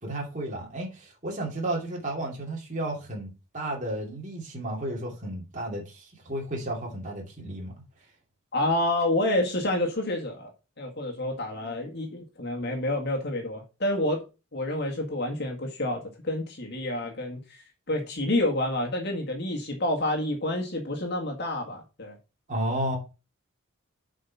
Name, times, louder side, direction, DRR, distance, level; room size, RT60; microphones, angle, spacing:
voice 1, 0.0-7.7 22.5-23.0, right 1 dB, 35° right, 2.7 m, -33 dB
voice 2, 8.5-10.5 10.8-14.2 14.5-22.2, left 1 dB, 55° left, 1.8 m, -28 dB
7.7 x 5.1 x 5.7 m
head